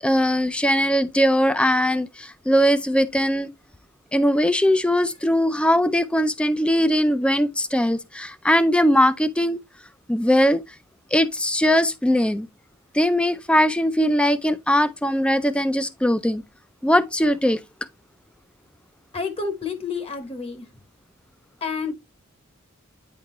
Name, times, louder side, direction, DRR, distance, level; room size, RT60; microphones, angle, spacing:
voice 1, 0.0-3.5 4.1-9.6 10.1-10.6 11.1-12.5 12.9-16.4 16.8-17.6, equal, 5° left, 0.4 m, -20 dB
voice 2, 19.1-20.7 21.6-21.9, left 5 dB, 30° left, 1.0 m, -29 dB
9.3 x 3.7 x 2.9 m
head